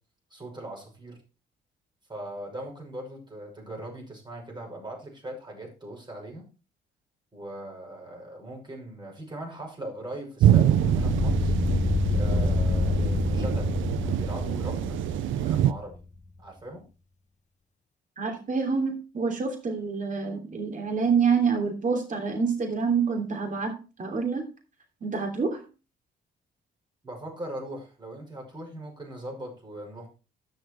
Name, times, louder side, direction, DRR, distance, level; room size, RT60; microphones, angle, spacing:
voice 1, 0.3-1.2 2.1-6.4 7.3-11.5 12.1-15.0 15.3-16.0 16.4-16.8 27.0-30.1, right 1 dB, 20° right, 0 dB, 6.0 m, -40 dB
sound 1, 10.4-15.7, right 11 dB, 80° right, 0.6 m, -25 dB
sound 2, 10.7-15.9, left 3 dB, 35° left, 1.3 m, -27 dB
voice 2, 18.2-24.5 25.0-25.6, right 5 dB, 40° right, 3 dB, 3.1 m, -27 dB
10.5 x 6.8 x 4.6 m, 0.32 s
cardioid pair, 90°, 20 cm